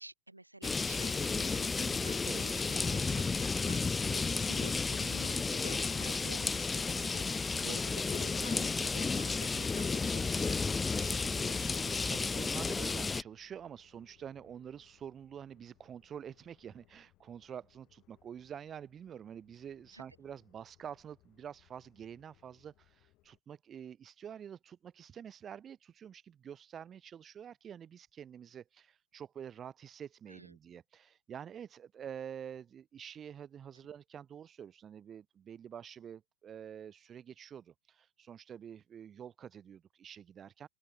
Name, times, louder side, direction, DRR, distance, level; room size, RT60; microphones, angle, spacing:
voice 1, 0.0-7.8 8.1-12.0 19.9-20.0 30.3-30.5, right 2 dB, 85° right, 3.0 m, -52 dB
sound 1, 0.6-13.2, left 4 dB, 15° left, 0.4 m, -32 dB
sound 2, 11.9-23.4, left 19 dB, 40° left, 5.2 m, -68 dB
voice 2, 12.1-40.7, right 8 dB, 25° right, 1.1 m, -47 dB
open air
figure-of-eight pair, 90°, 0 cm